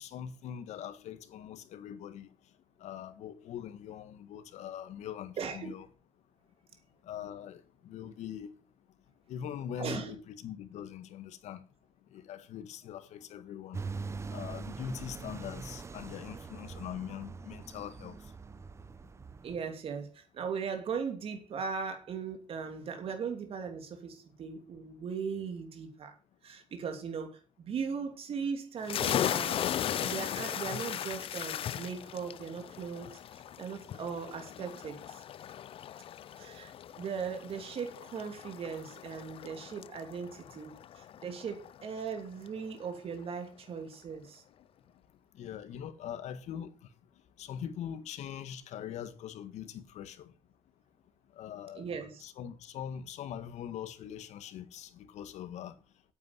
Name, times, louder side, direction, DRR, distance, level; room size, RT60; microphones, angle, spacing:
voice 1, 0.0-2.3 2.8-5.9 7.1-8.5 9.3-11.6 12.1-13.8 14.3-18.2 45.4-46.7 47.4-50.3 51.4-51.8 52.2-55.7, left 9 dB, 80° left, 1.7 m, -42 dB
voice 2, 5.4-5.8 9.8-10.1 19.4-26.1 26.4-33.1 33.6-35.2 36.4-44.4 51.7-52.2, right 6 dB, 55° right, 2.9 m, -38 dB
sound 1, 13.7-19.6, right 4 dB, 25° right, 0.7 m, -42 dB
sound 2, 28.8-42.2, left 10 dB, 50° left, 0.5 m, -37 dB
9.2 x 8.5 x 7.2 m
cardioid pair, 125°, 12 cm